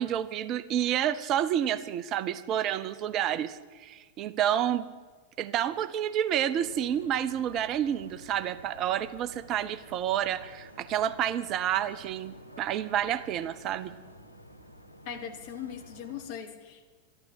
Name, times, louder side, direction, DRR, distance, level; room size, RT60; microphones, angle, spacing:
voice 1, 0.0-4.9 5.4-13.9, right 10 dB, 35° right, 15 dB, 0.6 m, -29 dB
sound 1, 6.5-16.3, equal, 85° right, 1.2 m, -51 dB
voice 2, 15.1-16.9, left 8 dB, 50° left, 5 dB, 1.8 m, -40 dB
12.5 x 12.0 x 8.1 m, 1.5 s
figure-of-eight pair, 90°, 0 cm